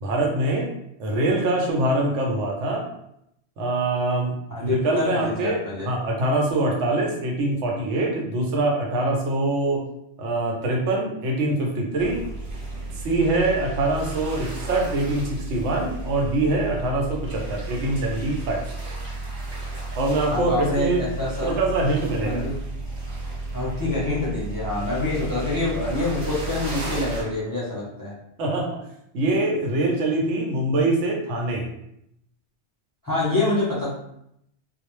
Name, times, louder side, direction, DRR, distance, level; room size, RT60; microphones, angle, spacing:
voice 1, 0.0-0.7 1.0-2.8 3.6-4.4 4.6-9.9 10.2-12.2 13.0-18.6 20.0-21.0 21.4-22.4 28.4-28.8 29.1-31.7, right 2 dB, 85° right, -1 dB, 0.9 m, -24 dB
voice 2, 4.5-5.9 20.3-21.5 22.2-22.5 23.5-28.1 33.0-33.9, left 2 dB, 25° left, -7 dB, 0.5 m, -26 dB
sound 1, 12.0-27.2, right 2 dB, 40° right, 1.0 m, -33 dB
2.3 x 2.0 x 3.0 m, 0.76 s
omnidirectional pair, 1.2 m